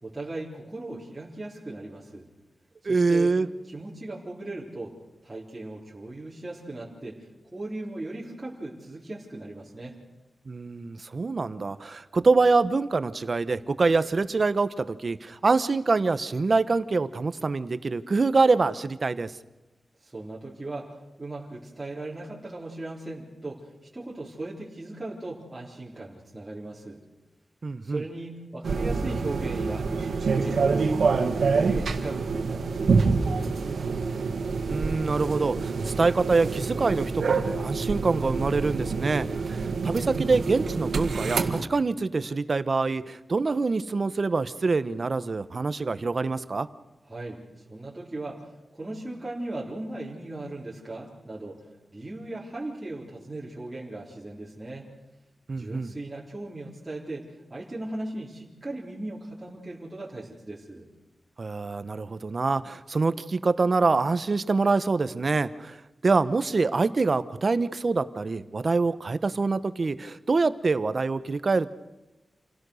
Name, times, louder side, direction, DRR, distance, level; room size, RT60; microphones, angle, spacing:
voice 1, 0.0-2.3 2.8-3.4 3.7-5.0 5.2-10.0 20.0-27.0 27.8-31.0 31.4-34.0 47.0-54.9 55.5-60.9, right 2 dB, 20° right, -6 dB, 3.9 m, -38 dB
voice 2, 2.8-3.5 10.5-19.3 27.6-28.0 34.7-46.7 55.5-55.9 61.4-71.7, right 3 dB, 45° right, 13 dB, 1.0 m, -25 dB
sound 1, 28.6-41.6, right 4 dB, 85° right, 1.8 m, -27 dB
28.0 x 17.0 x 6.4 m, 1.0 s
wide cardioid pair, 120°, 0 cm